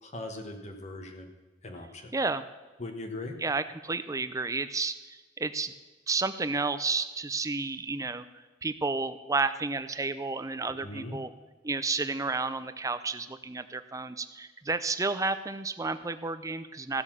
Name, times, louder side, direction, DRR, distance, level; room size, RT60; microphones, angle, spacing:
voice 1, 0.0-1.3 1.6-2.1 2.8-3.4 10.6-11.2, left 2 dB, 40° left, 4 dB, 1.2 m, -40 dB
voice 2, 2.1-2.4 3.4-5.7 6.1-11.3 11.6-17.0, right 3 dB, 20° right, 12 dB, 0.6 m, -31 dB
15.0 x 6.8 x 7.3 m, 1.2 s
head